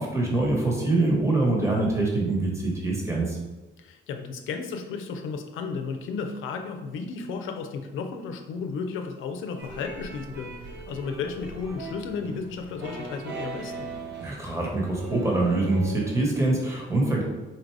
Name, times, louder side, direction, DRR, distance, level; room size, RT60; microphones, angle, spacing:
voice 1, 0.0-3.4 14.2-17.2, right 2 dB, 15° right, -2 dB, 1.3 m, -24 dB
voice 2, 3.8-13.9, left 5 dB, 80° left, 5 dB, 0.6 m, -34 dB
sound 1, 9.6-16.2, right 3 dB, 60° right, 0.9 m, -39 dB
4.4 x 2.5 x 4.7 m, 1.1 s
cardioid pair, 90°, 20 cm